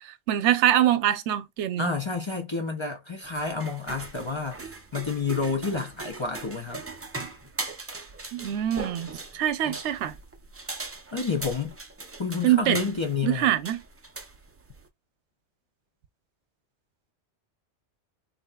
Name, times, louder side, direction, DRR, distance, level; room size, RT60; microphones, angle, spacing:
voice 1, 0.0-1.9 8.3-10.1 12.4-12.8 13.2-13.8, right 12 dB, 90° right, 0.9 m, -24 dB
voice 2, 1.8-6.8 11.1-11.7 12.2-13.5, left 4 dB, 40° left, 0.4 m, -29 dB
sound 1, 3.2-14.9, right 3 dB, 25° right, 0.3 m, -40 dB
3.6 x 2.8 x 2.2 m
omnidirectional pair, 1.1 m